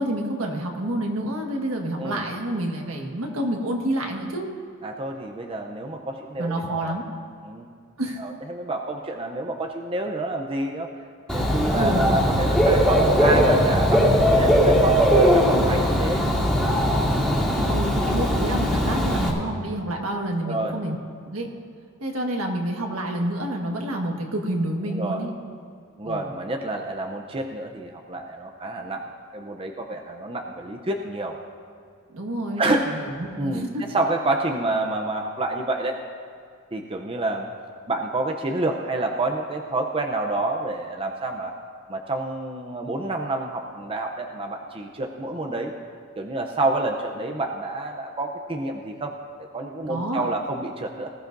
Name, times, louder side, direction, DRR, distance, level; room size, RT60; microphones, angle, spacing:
voice 1, 0.0-4.5 6.4-7.0 8.0-8.2 11.3-12.1 17.7-20.9 21.3-21.5 22.0-25.3 26.0-26.3 32.1-33.8 49.9-50.2, right 1 dB, 75° right, 1 dB, 1.6 m, -28 dB
voice 2, 4.8-7.0 7.4-7.7 8.2-10.9 11.3-16.2 17.4-17.7 20.4-20.8 24.9-25.2 26.0-29.1 29.3-31.4 32.6-32.9 33.4-36.0 36.7-37.5 37.9-41.5 41.9-45.7 46.2-49.1 49.5-51.1, right 2 dB, 25° right, 2 dB, 0.6 m, -28 dB
Dog / Bird, 11.3-19.3, equal, 5° left, 2.5 m, -19 dB
19.5 x 14.0 x 2.6 m, 2.2 s
head